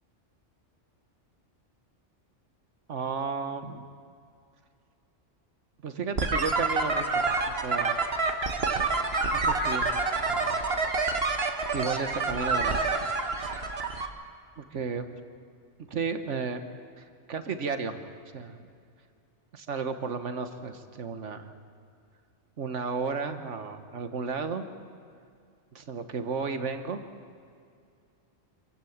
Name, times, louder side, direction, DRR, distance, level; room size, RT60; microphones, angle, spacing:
voice 1, 2.9-3.9 5.8-8.0 9.3-10.6 11.7-12.9 14.6-15.1 15.9-16.6 17.0-18.1 18.3-18.6 19.5-21.5 22.6-24.6 25.7-27.0, right 5 dB, 75° right, 8 dB, 1.6 m, -33 dB
sound 1, 6.2-14.1, right 3 dB, 55° right, 1.6 m, -27 dB
26.5 x 15.5 x 7.3 m, 2.4 s
omnidirectional pair, 1.3 m